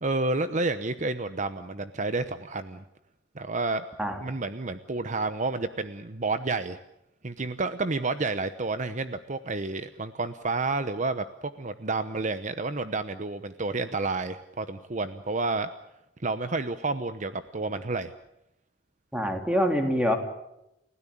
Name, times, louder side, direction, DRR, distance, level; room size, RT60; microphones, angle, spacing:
voice 1, 0.0-2.8 3.3-3.8 4.2-6.8 7.2-15.7 16.2-18.1, right 3 dB, 45° right, 11 dB, 1.0 m, -30 dB
voice 2, 19.1-20.2, equal, 5° right, 4 dB, 3.4 m, -25 dB
30.0 x 16.5 x 8.7 m, 0.85 s
head